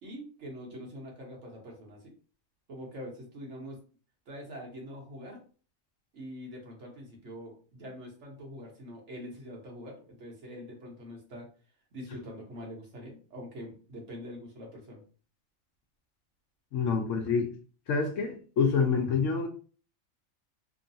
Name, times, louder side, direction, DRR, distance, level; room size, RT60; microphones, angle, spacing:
voice 1, 0.0-2.1 2.7-3.8 4.3-5.4 6.1-11.5 11.9-15.0, equal, 60° right, -1 dB, 1.3 m, -44 dB
voice 2, 16.7-17.5 17.9-19.5, left 5 dB, 70° left, 4 dB, 0.9 m, -27 dB
3.0 x 2.2 x 2.6 m, 0.39 s
omnidirectional pair, 1.4 m